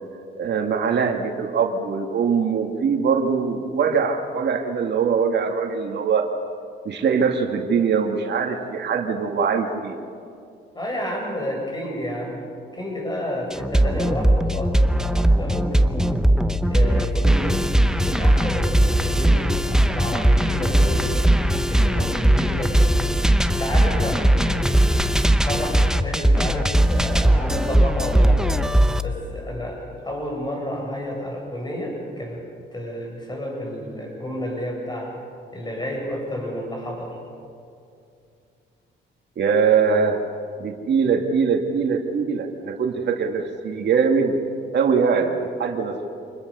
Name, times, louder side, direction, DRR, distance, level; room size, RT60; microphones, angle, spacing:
voice 1, 0.4-6.3 6.9-10.0 39.4-40.2 40.6-44.4 44.7-46.1, right 6 dB, 60° right, 3 dB, 2.2 m, -22 dB
voice 2, 10.7-12.4 12.7-16.2 16.7-21.2 21.7-22.8 23.4-24.9 25.3-32.4 32.7-35.2 35.5-37.2, equal, 20° left, 1 dB, 7.8 m, -30 dB
sound 1, 13.5-29.0, right 1 dB, 5° right, 0.9 m, -19 dB
27.0 x 20.5 x 6.9 m, 2.5 s
cardioid pair, 90°, 20 cm